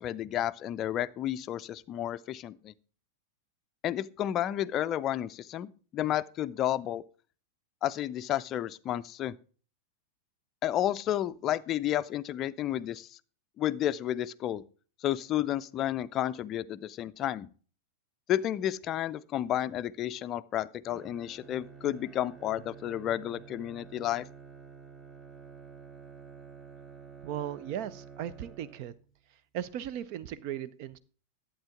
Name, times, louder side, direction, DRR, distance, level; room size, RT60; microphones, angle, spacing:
voice 1, 0.0-2.7 3.8-7.0 7.8-9.4 10.6-13.1 13.6-14.6 15.0-17.5 18.3-24.3, left 12 dB, 30° left, 0.4 m, -31 dB
Bowed string instrument, 20.9-29.2, right 5 dB, 15° right, 1.0 m, -50 dB
voice 2, 27.2-28.9 29.5-31.0, right 10 dB, 45° right, 0.5 m, -37 dB
11.5 x 8.5 x 3.6 m
figure-of-eight pair, 90°, 0 cm